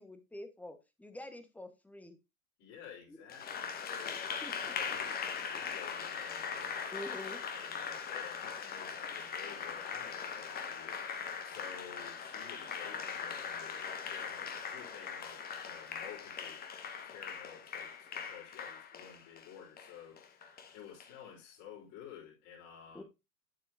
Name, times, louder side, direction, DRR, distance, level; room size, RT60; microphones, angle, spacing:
voice 1, 0.0-2.2 3.1-3.2 4.4-4.7 6.9-7.4 22.9-23.0, left 1 dB, 5° left, 1.2 m, -46 dB
voice 2, 2.6-4.2 4.6-11.1 11.4-16.6 17.0-23.0, left 8 dB, 40° left, 4.0 m, -52 dB
Applause, 3.3-21.1, left 6 dB, 20° left, 1.2 m, -40 dB
9.0 x 7.7 x 2.6 m
figure-of-eight pair, 100°, 43 cm